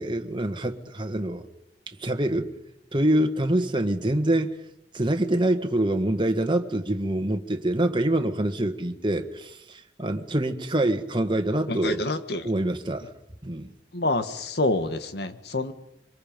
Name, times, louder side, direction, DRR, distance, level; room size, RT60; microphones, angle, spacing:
voice 1, 0.0-1.5 1.9-2.5 2.9-4.5 4.9-12.1 12.4-13.1 13.4-13.7, right 1 dB, 30° right, 1.6 m, -25 dB
voice 2, 11.7-12.5 13.9-15.7, left 2 dB, 65° left, 1.8 m, -27 dB
26.0 x 24.5 x 5.3 m
head